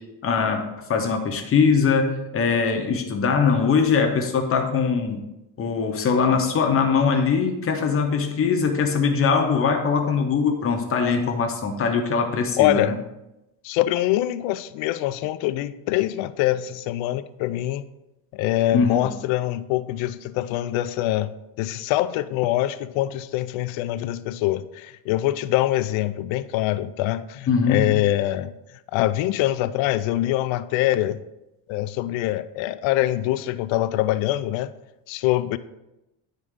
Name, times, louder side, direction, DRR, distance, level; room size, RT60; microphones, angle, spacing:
voice 1, 0.2-5.2 5.6-13.0 18.7-19.1 27.5-27.9, left 5 dB, 30° left, 0.7 m, -21 dB
voice 2, 12.6-13.0 13.6-17.8 18.3-21.3 21.6-28.5 28.9-31.2 31.7-34.7 35.1-35.6, left 14 dB, 80° left, 0.5 m, -24 dB
10.5 x 3.7 x 3.6 m
cardioid pair, 170°, 47 cm